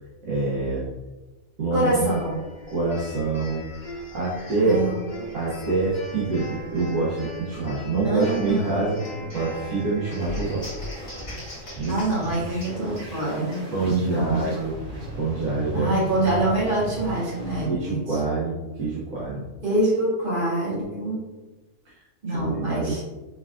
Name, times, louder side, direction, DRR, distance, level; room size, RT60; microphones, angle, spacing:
voice 1, 0.2-0.9 1.6-2.2 2.7-3.7 4.1-4.8 5.3-9.0 9.3-10.7 11.7-11.9 13.7-14.7 15.2-16.0 17.6-19.5 21.8-22.0 22.3-23.0, right 3 dB, 80° right, -6 dB, 1.2 m, -26 dB
voice 2, 1.7-2.4 4.6-5.5 8.0-8.8 9.2-9.3 11.9-13.6 14.0-14.4 15.7-18.2 19.6-21.2 22.2-23.0, right 1 dB, 40° right, -8 dB, 1.7 m, -25 dB
sound 1, 1.9-13.6, equal, 45° left, 1.7 m, -40 dB
sound 2, 10.2-17.7, equal, 55° right, 2.0 m, -36 dB
4.5 x 3.4 x 2.4 m, 1.2 s
omnidirectional pair, 1.4 m